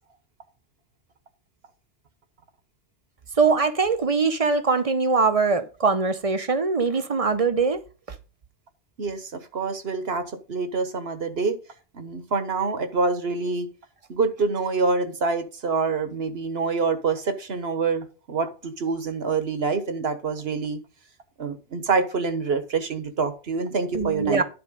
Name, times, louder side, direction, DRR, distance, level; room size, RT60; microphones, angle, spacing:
voice 1, 3.4-7.8 23.9-24.4, right 4 dB, 35° right, 0.7 m, -22 dB
voice 2, 9.0-11.6 11.9-13.7 14.1-20.8 21.4-24.4, right 4 dB, 65° right, 1.3 m, -26 dB
10.0 x 4.4 x 5.2 m
omnidirectional pair, 1.1 m